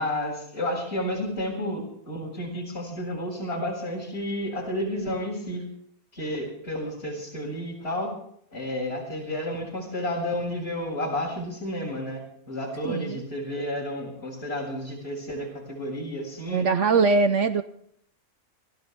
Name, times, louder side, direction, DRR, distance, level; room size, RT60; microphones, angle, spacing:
voice 1, 0.0-5.6 6.1-8.2 8.5-16.7, left 1 dB, 40° left, -2 dB, 7.6 m, -31 dB
voice 2, 12.8-13.2 16.5-17.6, right 4 dB, 60° right, 10 dB, 1.0 m, -22 dB
23.0 x 16.0 x 3.6 m, 0.67 s
omnidirectional pair, 1.6 m